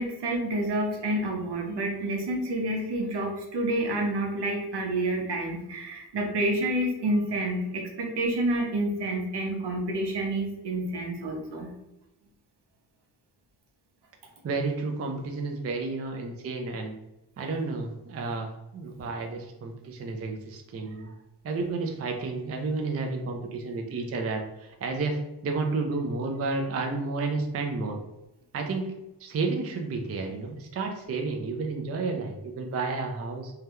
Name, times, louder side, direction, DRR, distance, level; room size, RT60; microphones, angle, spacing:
voice 1, 0.0-11.7, right 1 dB, 70° right, 1 dB, 0.8 m, -29 dB
voice 2, 14.4-17.0 17.4-21.1 21.4-28.0 28.5-28.9 29.2-33.5, right 3 dB, 35° right, 2 dB, 0.4 m, -31 dB
2.8 x 2.2 x 3.4 m, 0.93 s
wide cardioid pair, 125°, 42 cm